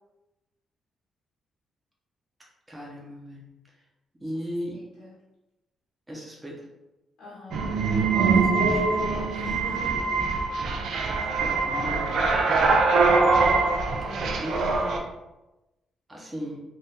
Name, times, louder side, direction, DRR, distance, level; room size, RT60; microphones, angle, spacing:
voice 1, 2.7-3.5 4.2-4.8 6.1-6.6 8.6-9.2 11.1-12.3 14.0-15.0 16.1-16.6, equal, 10° right, -3 dB, 0.7 m, -37 dB
voice 2, 4.7-5.1 7.2-7.6 8.0-8.8 9.3-10.3 11.0-11.1, equal, 85° left, -7 dB, 0.9 m, -42 dB
sound 1, 7.5-15.0, right 4 dB, 65° right, 0.4 m, -23 dB
2.7 x 2.4 x 3.5 m, 1.0 s
cardioid pair, 170°, 0 cm